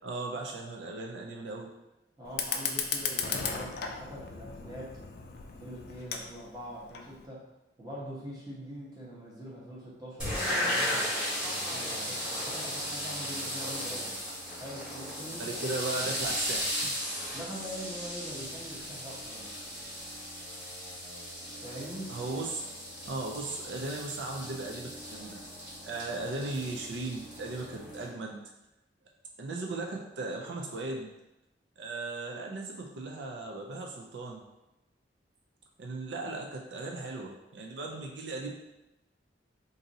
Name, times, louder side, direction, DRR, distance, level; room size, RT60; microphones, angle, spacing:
voice 1, 0.0-1.7 15.4-16.9 22.1-22.6 23.0-25.4 25.8-28.4 29.4-31.1 31.8-34.4 35.8-38.5, right 2 dB, 80° right, 1 dB, 0.4 m, -37 dB
voice 2, 2.2-5.0 5.6-7.4 7.8-11.0 11.6-14.1 14.5-15.5 17.3-19.5 21.6-22.2, equal, 20° right, -6 dB, 0.9 m, -43 dB
Fire, 2.3-7.3, left 6 dB, 60° left, 0.4 m, -36 dB
sound 1, 10.2-28.1, equal, 5° right, 1.2 m, -36 dB
2.6 x 2.6 x 3.9 m, 0.96 s
head